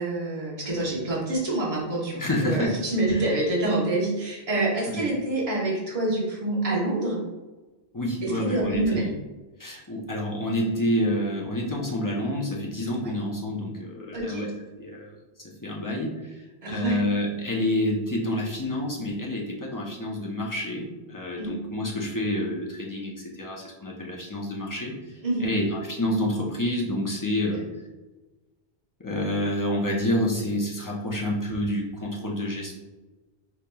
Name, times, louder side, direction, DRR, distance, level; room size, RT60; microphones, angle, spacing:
voice 1, 0.0-7.2 8.2-9.1 14.1-14.5 16.6-17.0 21.4-21.6 25.2-25.5, right 2 dB, 35° right, -5 dB, 1.0 m, -26 dB
voice 2, 2.1-2.8 3.1-3.3 4.9-5.0 7.9-9.1 9.6-14.5 14.8-15.1 15.4-27.6 29.0-32.7, left 1 dB, 25° left, -3 dB, 0.5 m, -28 dB
5.0 x 2.9 x 2.2 m, 1.2 s
omnidirectional pair, 1.0 m